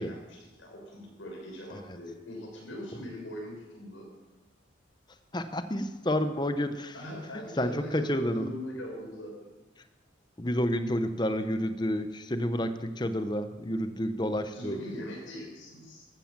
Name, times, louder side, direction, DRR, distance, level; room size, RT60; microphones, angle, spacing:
voice 1, 0.0-4.1 6.9-9.5 14.5-16.1, equal, 85° left, -1 dB, 6.4 m, -41 dB
voice 2, 5.3-6.9 7.6-8.5 10.4-14.8, left 1 dB, 20° left, 9 dB, 0.7 m, -30 dB
14.5 x 13.5 x 7.4 m, 1.2 s
head